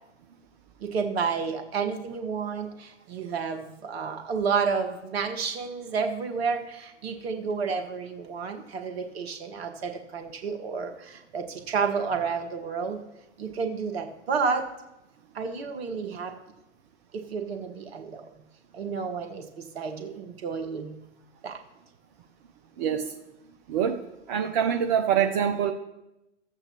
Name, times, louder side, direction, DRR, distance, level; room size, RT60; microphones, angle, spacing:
voice 1, 0.8-13.0 13.4-14.7 15.3-16.3 17.1-18.2 18.7-21.0 21.4-21.6, right 5 dB, 55° right, 5 dB, 1.3 m, -30 dB
voice 2, 22.8-23.2 23.7-24.0 24.3-25.7, right 8 dB, 40° right, 5 dB, 0.6 m, -25 dB
14.5 x 8.0 x 2.9 m, 0.94 s
figure-of-eight pair, 100°, 36 cm